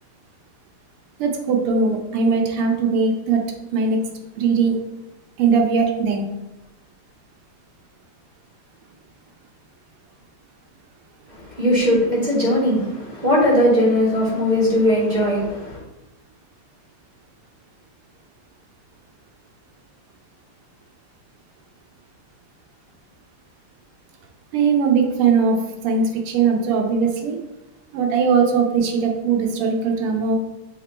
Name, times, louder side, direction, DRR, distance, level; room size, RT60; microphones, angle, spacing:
voice 1, 1.2-3.4 3.7-4.0 4.4-4.8 5.4-6.3 24.5-25.6 25.8-27.4 27.9-30.4, right 5 dB, 90° right, 2 dB, 1.7 m, -20 dB
voice 2, 11.3-15.8, equal, 20° right, -7 dB, 2.0 m, -19 dB
7.6 x 3.0 x 4.2 m, 1.0 s
omnidirectional pair, 2.4 m